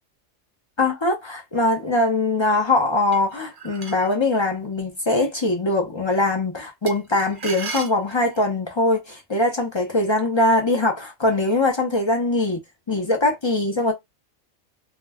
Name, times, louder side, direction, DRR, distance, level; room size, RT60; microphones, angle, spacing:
voice 1, 0.8-12.6 12.9-13.9, left 2 dB, 35° left, 0.4 m, -22 dB
sound 1, 3.1-4.2 6.9-8.5, right 4 dB, 50° right, 0.8 m, -35 dB
2.4 x 2.1 x 3.4 m
omnidirectional pair, 1.3 m